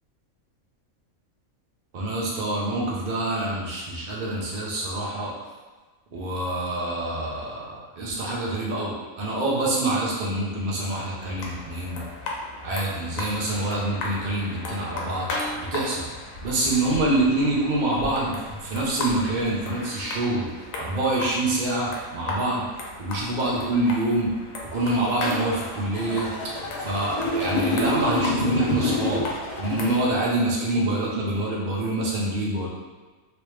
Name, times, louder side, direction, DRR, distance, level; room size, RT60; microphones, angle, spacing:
voice 1, 1.9-5.3 6.1-12.1 12.6-15.3 15.6-16.1 16.4-22.7 23.0-24.3 24.7-26.3 26.8-29.2 29.6-32.7, right 2 dB, 45° right, -4 dB, 0.8 m, -26 dB
sound 1, 11.2-30.1, left 2 dB, 80° left, 1.1 m, -36 dB
sound 2, 16.1-19.6, equal, 85° right, 1.3 m, -42 dB
sound 3, 24.7-30.0, left 2 dB, 65° left, 0.4 m, -28 dB
3.2 x 3.0 x 3.2 m, 1.3 s
omnidirectional pair, 1.4 m